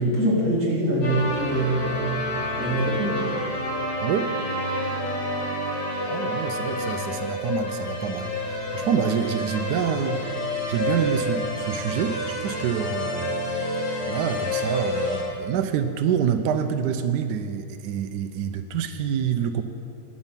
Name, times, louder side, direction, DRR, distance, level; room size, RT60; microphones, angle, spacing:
voice 1, 0.0-2.1 2.6-3.2, right 1 dB, 50° right, -6 dB, 3.0 m, -24 dB
sound 1, 1.0-15.2, left 1 dB, 80° left, 2.8 m, -29 dB
voice 2, 6.0-10.2 10.7-13.3 14.1-19.6, right 8 dB, 85° right, 7 dB, 1.2 m, -27 dB
11.5 x 8.8 x 5.8 m, 2.6 s
omnidirectional pair, 1.7 m